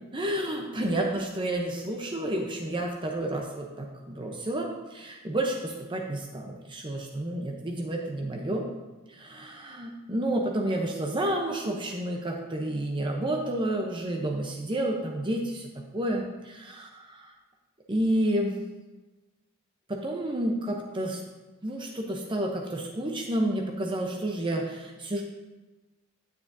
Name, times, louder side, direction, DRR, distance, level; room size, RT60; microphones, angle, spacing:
voice 1, 0.1-8.6 9.1-16.2 17.1-17.3 17.9-18.6 19.9-21.2 21.6-25.2, right 1 dB, 25° right, 1 dB, 0.7 m, -30 dB
9.7 x 9.3 x 2.7 m, 1.1 s
head